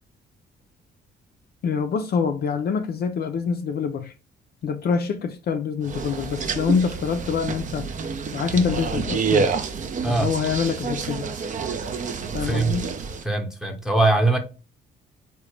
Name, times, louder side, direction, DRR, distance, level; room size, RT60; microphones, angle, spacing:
voice 1, 1.6-4.1 4.6-7.9 8.3-9.5 10.1-11.3 12.3-12.9, left 6 dB, 55° left, 0.4 m, -25 dB
sound 1, 5.8-13.2, right 5 dB, 40° right, 0.5 m, -28 dB
voice 2, 12.4-12.8 13.2-14.4, right 2 dB, ahead, 0.8 m, -21 dB
3.7 x 2.2 x 3.1 m
cardioid pair, 90°, 20 cm